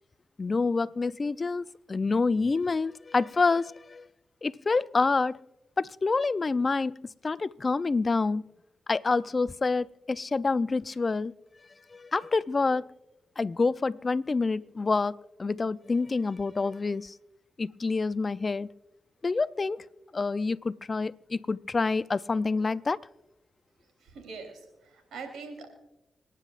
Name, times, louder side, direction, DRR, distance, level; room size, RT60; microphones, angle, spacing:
voice 1, 0.4-4.1 4.4-5.4 5.8-8.5 8.9-11.3 11.9-12.9 13.4-17.1 17.6-18.7 19.2-19.9 20.1-23.0, left 3 dB, 45° left, 0.5 m, -27 dB
voice 2, 24.0-25.7, right 4 dB, 85° right, 3.3 m, -43 dB
27.5 x 9.9 x 2.5 m
supercardioid pair, 45°, 0 cm